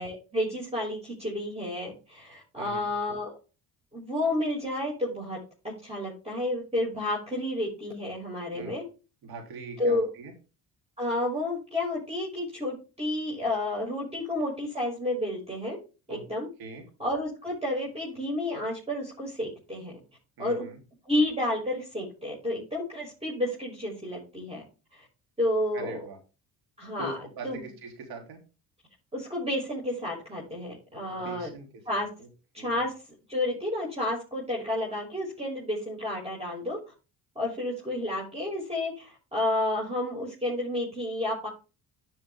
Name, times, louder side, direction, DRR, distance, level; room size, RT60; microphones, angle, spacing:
voice 1, 0.0-3.3 3.9-5.4 5.8-8.8 9.8-10.1 11.0-15.8 16.1-16.5 17.0-19.9 20.4-20.7 21.1-24.6 24.9-25.1 25.4-26.0 26.8-27.2 27.4-27.6 29.1-31.5 31.9-32.1 32.5-32.9 33.3-36.8 37.3-41.5, left 1 dB, 15° right, -3 dB, 6.1 m, -30 dB
voice 2, 2.6-2.9 8.5-8.8 9.2-10.3 16.1-16.2 16.6-16.9 20.4-20.8 25.7-26.2 27.0-28.4 31.1-32.3 32.6-32.8, right 2 dB, 75° right, 3 dB, 3.6 m, -42 dB
10.5 x 6.4 x 3.6 m, 0.32 s
supercardioid pair, 80°, 37 cm